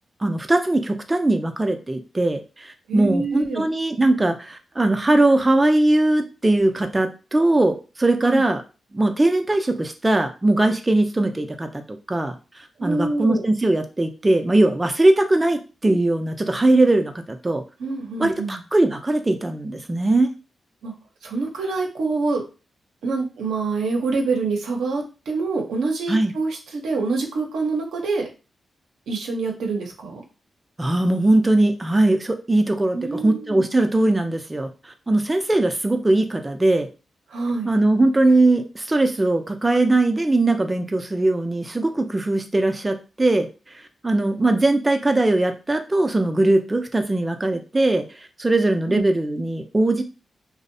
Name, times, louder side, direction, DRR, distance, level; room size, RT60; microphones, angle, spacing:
voice 1, 0.2-8.6 8.9-17.6 18.2-20.3 26.1-26.3 30.8-36.9 37.7-43.5 44.0-50.0, right 2 dB, 25° right, 6 dB, 0.4 m, -20 dB
voice 2, 2.9-3.7 8.2-8.4 12.8-13.4 17.8-18.6 20.8-20.9 21.2-22.4 23.0-28.3 29.1-30.2 32.9-33.6 37.3-37.7 48.9-49.0, right 3 dB, 85° right, 1 dB, 0.6 m, -26 dB
2.5 x 2.0 x 2.6 m, 0.32 s
supercardioid pair, 50°, 0 cm